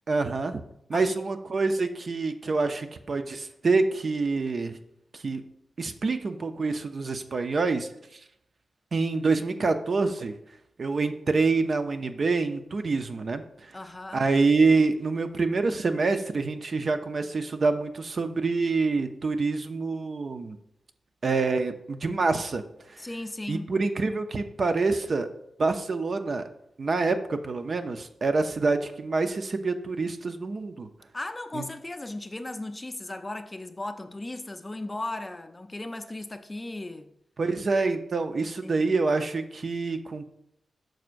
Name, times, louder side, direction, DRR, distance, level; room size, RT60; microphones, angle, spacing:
voice 1, 0.1-0.6 0.9-4.8 5.2-5.4 5.8-7.9 8.9-10.4 10.8-13.4 14.1-20.6 21.2-22.6 23.5-25.3 25.6-26.4 26.8-30.9 31.5-31.7 37.4-40.3, right 3 dB, 50° right, 0.6 m, -26 dB
voice 2, 13.7-14.3 23.0-23.7 31.1-37.1 38.6-38.9, left 2 dB, 20° left, 0.5 m, -36 dB
9.1 x 6.2 x 2.5 m
wide cardioid pair, 105°, 0 cm